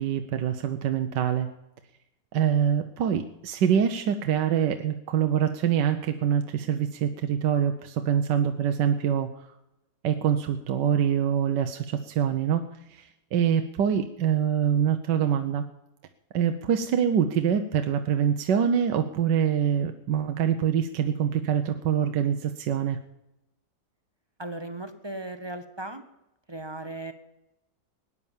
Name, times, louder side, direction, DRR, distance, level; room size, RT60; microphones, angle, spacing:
voice 1, 0.0-1.5 2.3-9.5 10.0-15.6 16.3-23.0, right 8 dB, 80° right, 7 dB, 1.4 m, -25 dB
voice 2, 24.4-26.0 26.5-27.1, right 2 dB, 20° right, 8 dB, 0.7 m, -37 dB
18.0 x 9.9 x 7.2 m, 0.90 s
omnidirectional pair, 1.9 m